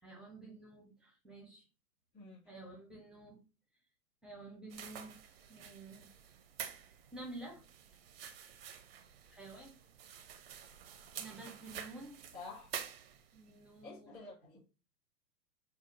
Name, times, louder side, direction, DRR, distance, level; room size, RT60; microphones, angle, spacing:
voice 1, 0.0-1.6 2.4-3.4 4.2-5.2 5.5-6.1 7.1-7.6 9.3-9.7 11.2-12.2 13.3-14.2, right 2 dB, ahead, 0.7 m, -50 dB
voice 2, 2.1-2.5 12.3-12.9 13.8-14.6, left 3 dB, 25° left, 2.4 m, -50 dB
sound 1, 4.7-13.5, right 8 dB, 40° right, 0.5 m, -49 dB
6.3 x 2.3 x 2.5 m
figure-of-eight pair, 120°, 49 cm